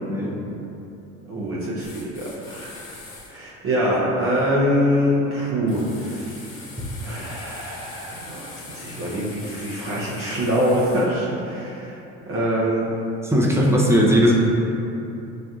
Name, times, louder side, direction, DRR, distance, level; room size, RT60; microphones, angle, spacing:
voice 1, 0.1-0.4 13.2-14.3, equal, 5° right, -3 dB, 0.6 m, -18 dB
voice 2, 1.3-2.7 3.3-6.5 7.0-11.9 12.3-12.9, equal, 40° right, -7 dB, 0.8 m, -24 dB
sound 1, 1.8-3.3 5.7-11.1, left 3 dB, 65° left, 1.0 m, -42 dB
6.2 x 2.5 x 2.4 m, 2.9 s
hypercardioid pair, 70°, 36 cm